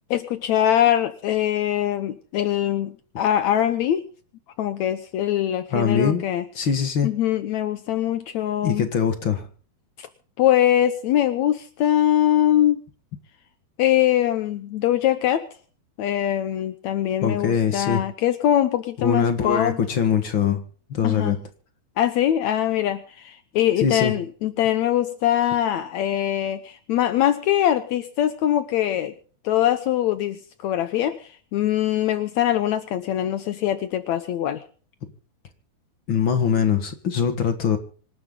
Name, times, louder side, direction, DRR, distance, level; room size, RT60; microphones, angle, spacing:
voice 1, 0.1-4.1 4.6-6.4 7.0-8.9 10.0-10.1 10.4-12.8 13.8-15.4 16.0-19.8 21.0-21.3 22.0-29.1 29.4-34.6, left 11 dB, 85° left, 10 dB, 1.6 m, -22 dB
voice 2, 5.7-6.2 6.5-7.1 8.6-9.5 17.2-18.0 19.0-20.6 20.9-21.4 23.8-24.1 36.1-37.8, left 7 dB, 50° left, 7 dB, 1.6 m, -22 dB
26.0 x 11.5 x 3.8 m, 0.42 s
omnidirectional pair, 4.5 m